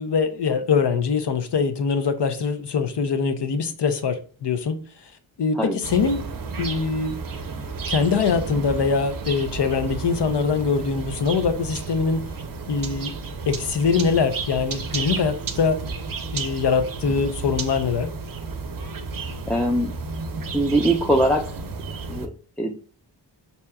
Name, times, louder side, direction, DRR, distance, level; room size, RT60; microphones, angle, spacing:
voice 1, 0.0-4.8 5.4-6.2 6.6-7.2 7.9-12.3 12.7-13.1 13.5-15.8 16.3-18.1, left 5 dB, 65° left, 0.6 m, -23 dB
sound 1, 5.8-22.3, right 4 dB, 50° right, 0.6 m, -32 dB
voice 2, 19.5-19.9 20.5-21.5 22.1-22.3 22.6-22.8, right 1 dB, 5° left, 0.4 m, -21 dB
4.4 x 2.8 x 2.2 m
cardioid pair, 45°, 45 cm